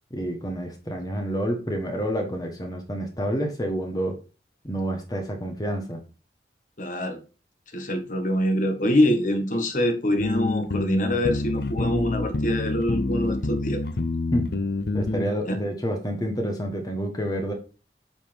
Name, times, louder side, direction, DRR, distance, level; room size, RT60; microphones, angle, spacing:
voice 1, 0.1-4.2 4.6-6.0 14.3-14.5 14.9-17.5, equal, 20° left, 3 dB, 1.2 m, -28 dB
voice 2, 6.8-7.2 7.7-13.8 15.5-15.6, left 1 dB, 45° left, 5 dB, 1.5 m, -24 dB
sound 1, 10.2-15.3, left 2 dB, 65° left, 0.7 m, -27 dB
8.5 x 5.1 x 3.5 m, 0.34 s
head